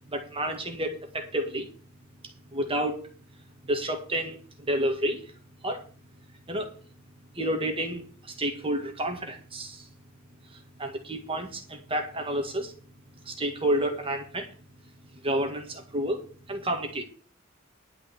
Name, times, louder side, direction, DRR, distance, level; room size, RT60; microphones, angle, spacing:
voice 1, 0.1-1.7 2.5-3.1 3.6-5.2 5.6-5.9 6.5-6.8 7.4-9.9 10.5-12.7 13.2-14.5 15.2-17.0, right 1 dB, 25° right, 4 dB, 1.9 m, -30 dB
11.0 x 5.3 x 8.4 m, 0.40 s
head